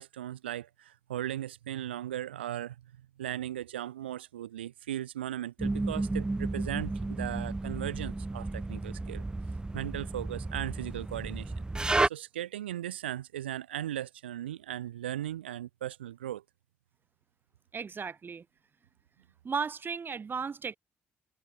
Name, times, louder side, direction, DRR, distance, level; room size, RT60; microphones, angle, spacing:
voice 1, 0.0-2.8 3.2-9.2 9.7-11.5 12.0-16.4, right 12 dB, 80° right, 0.7 m, -37 dB
sound 1, 5.6-12.1, right 2 dB, 15° right, 0.4 m, -32 dB
voice 2, 17.7-18.4 19.4-20.8, right 5 dB, 40° right, 1.7 m, -35 dB
figure-of-eight pair, 40°, 6 cm